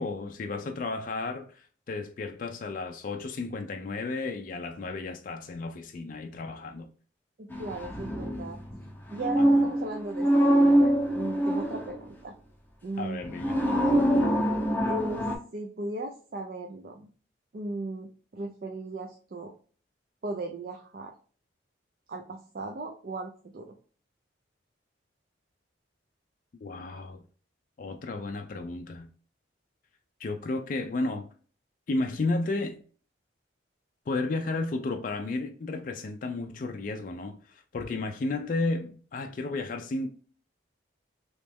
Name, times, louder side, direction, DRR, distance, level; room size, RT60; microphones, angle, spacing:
voice 1, 0.0-6.9 9.4-9.5 13.0-13.6 26.6-27.2 27.8-29.1 30.2-31.3 31.9-32.8 34.1-40.1, left 3 dB, 45° left, 0.3 m, -33 dB
voice 2, 7.4-8.6 9.1-12.3 12.8-13.2 14.9-15.3 15.5-17.1 17.5-19.5 20.2-21.1 22.1-23.8, right 2 dB, 45° right, 0.4 m, -37 dB
sound 1, 7.5-12.1 13.2-15.4, right 1 dB, 10° left, 0.6 m, -24 dB
3.2 x 3.0 x 3.4 m
head